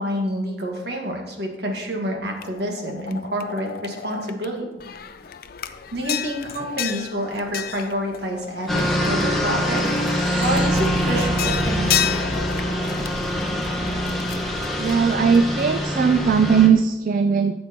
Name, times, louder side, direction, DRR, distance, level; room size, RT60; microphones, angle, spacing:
voice 1, 0.0-4.7 5.9-9.8 10.4-12.2, equal, 65° right, 1 dB, 1.8 m, -28 dB
sound 1, 2.4-4.4 4.8-9.2 9.7-15.6, left 9 dB, 55° left, 0.5 m, -32 dB
sound 2, 7.7-7.9 8.1-10.9, right 2 dB, 30° right, 1.3 m, -39 dB
sound 3, 8.7-16.7, equal, ahead, 1.4 m, -24 dB
voice 2, 14.8-17.5, right 6 dB, 50° right, 10 dB, 0.3 m, -18 dB
12.5 x 7.5 x 3.0 m, 1.1 s
head